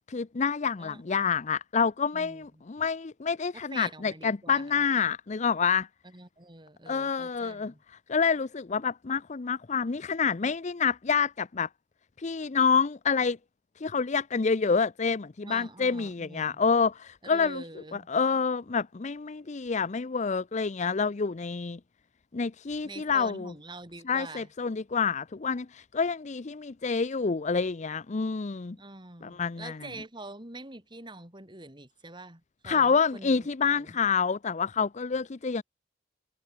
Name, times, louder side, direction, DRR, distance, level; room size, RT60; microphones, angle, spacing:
voice 1, 0.1-5.9 6.9-7.7 8.1-11.7 12.2-13.4 13.8-17.6 17.9-21.8 22.3-23.5 24.1-28.8 29.2-29.8 32.6-35.6, left 5 dB, 40° left, 0.6 m, -28 dB
voice 2, 2.1-2.6 3.5-4.7 6.0-7.8 15.4-16.6 17.2-18.1 22.8-24.5 28.8-33.5 33.7-34.0, right 2 dB, 25° right, 4.8 m, -45 dB
head